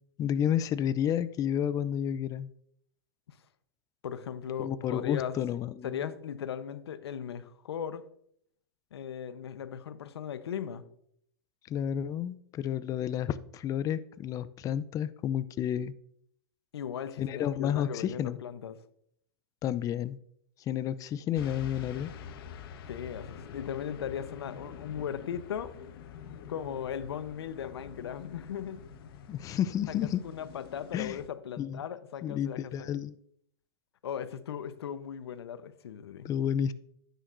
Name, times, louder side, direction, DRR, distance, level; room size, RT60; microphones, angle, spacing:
voice 1, 0.2-2.5 4.6-6.1 11.7-15.9 17.2-18.4 19.6-20.2 20.7-22.1 29.3-30.2 30.9-31.2 31.6-31.8 32.2-33.2 36.2-36.7, left 9 dB, 25° left, 15 dB, 0.5 m, -31 dB
voice 2, 4.0-5.4 5.8-8.0 8.9-10.8 16.7-18.8 22.9-25.7 26.5-28.8 29.9-30.0 30.2-32.9 34.0-36.3, left 8 dB, 80° left, 13 dB, 0.9 m, -37 dB
sound 1, 21.3-31.3, left 7 dB, 60° left, 1.2 m, -46 dB
11.0 x 9.3 x 2.6 m, 0.69 s
hypercardioid pair, 120°, 13 cm